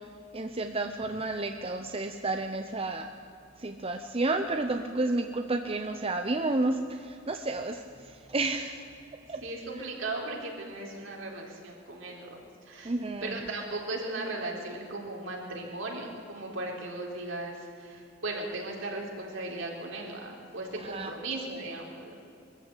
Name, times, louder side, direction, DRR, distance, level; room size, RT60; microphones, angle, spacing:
voice 1, 0.3-3.1 3.6-8.8 9.3-9.4 12.8-13.5 20.8-21.1, right 2 dB, 30° right, 6 dB, 0.8 m, -31 dB
voice 2, 9.4-12.4 12.7-12.9 13.2-22.2, right 2 dB, 70° right, 0 dB, 4.0 m, -37 dB
22.5 x 14.0 x 8.4 m, 2.6 s
head